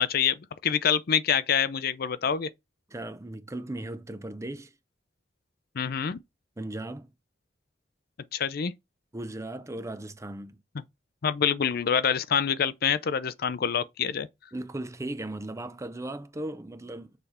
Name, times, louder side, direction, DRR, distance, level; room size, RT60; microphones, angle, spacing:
voice 1, 0.0-2.5 5.8-6.2 8.3-8.7 11.2-14.3, left 7 dB, 55° left, 0.5 m, -26 dB
voice 2, 2.9-4.7 6.6-7.1 9.1-10.6 14.5-17.1, right 1 dB, 15° right, 0.5 m, -37 dB
6.8 x 3.3 x 4.2 m
head